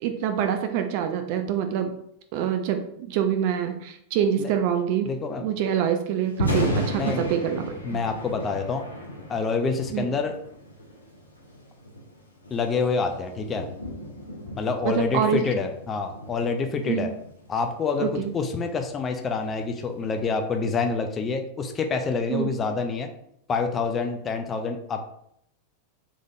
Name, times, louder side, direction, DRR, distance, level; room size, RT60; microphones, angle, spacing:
voice 1, 0.0-1.9 2.3-5.1 5.4-7.7 9.9-10.0 14.8-15.4 16.8-17.2 18.0-18.3 22.3-22.5, right 8 dB, 45° right, 7 dB, 0.4 m, -25 dB
voice 2, 5.0-5.5 6.9-7.3 7.8-8.8 9.3-10.3 12.5-13.7 14.5-17.1 17.5-23.1 23.5-25.0, left 4 dB, 25° left, 6 dB, 0.4 m, -27 dB
Thunder, 6.2-20.4, equal, 75° left, 0.7 m, -35 dB
3.8 x 3.2 x 2.5 m, 0.71 s
figure-of-eight pair, 90°, 0 cm